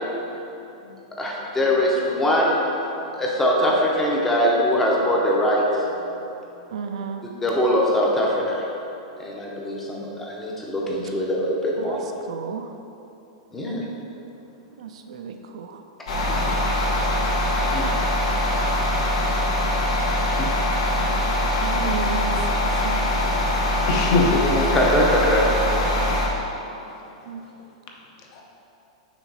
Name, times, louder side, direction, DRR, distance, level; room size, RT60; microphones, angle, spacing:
voice 1, 1.2-2.6 3.1-5.9 7.4-8.7 9.2-12.1 13.5-13.8 24.3-25.5, equal, 10° left, -3 dB, 0.7 m, -22 dB
voice 2, 6.7-7.2 11.8-12.0 12.3-12.7 14.8-15.8 21.0-21.2 21.6-23.0 27.3-27.4, right 6 dB, 70° right, 5 dB, 0.5 m, -33 dB
sound 1, 16.1-26.3, left 1 dB, 80° left, 1.4 m, -22 dB
voice 3, 17.7-18.7 20.4-20.5 23.9-24.4 24.9-25.0 28.4-28.5, left 3 dB, 40° left, 0 dB, 0.8 m, -25 dB
6.0 x 3.9 x 5.5 m, 2.9 s
supercardioid pair, 170°, 3 cm